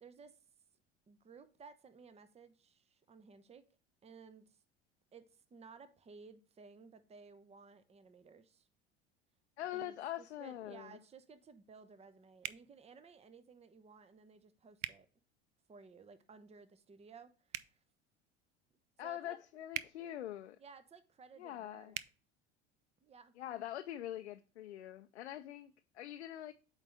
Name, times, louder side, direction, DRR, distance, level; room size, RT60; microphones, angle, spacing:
voice 1, 0.0-0.4 1.1-3.7 4.0-4.6 5.1-8.7 9.7-15.1 15.7-17.8 19.0-19.4 20.6-21.9 23.0-23.4, right 5 dB, 20° right, 0.8 m, -57 dB
voice 2, 9.6-11.0 19.0-20.6 21.4-22.0 23.4-26.5, left 12 dB, 90° left, 0.5 m, -44 dB
sound 1, 12.4-12.6 14.8-15.0 17.5-17.7 19.7-19.9 21.9-22.1, right 15 dB, 60° right, 0.5 m, -41 dB
8.2 x 4.0 x 3.3 m
hypercardioid pair, 75°, 33 cm